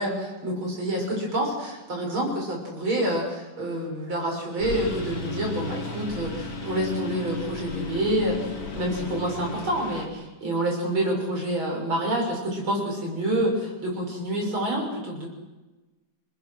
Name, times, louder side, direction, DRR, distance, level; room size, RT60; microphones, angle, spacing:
voice 1, 0.0-15.3, right 1 dB, 80° right, -1 dB, 7.3 m, -28 dB
Engine, 4.6-10.1, left 3 dB, 75° left, 3.9 m, -34 dB
27.5 x 20.5 x 6.4 m, 1.1 s
omnidirectional pair, 2.2 m